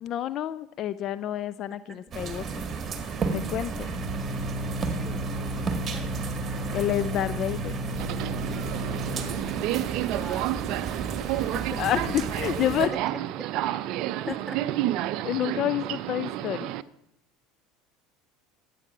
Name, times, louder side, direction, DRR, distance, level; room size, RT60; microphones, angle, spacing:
voice 1, 0.0-2.6 3.3-3.9 6.7-7.8 11.8-12.9 15.2-16.7, left 11 dB, 50° left, 17 dB, 0.4 m, -29 dB
Organ, 2.1-12.6, equal, 15° left, 3.4 m, -35 dB
sound 1, 2.1-12.9, right 5 dB, 30° right, 1.8 m, -34 dB
voice 2, 5.0-6.3 10.0-10.5 11.4-12.2 12.6-13.7 14.1-14.8, right 2 dB, 5° right, 4 dB, 1.9 m, -41 dB
Subway metro underground, 7.9-16.8, right 14 dB, 60° right, 0.5 m, -30 dB
13.5 x 8.5 x 5.8 m, 0.84 s
hypercardioid pair, 75°, 0 cm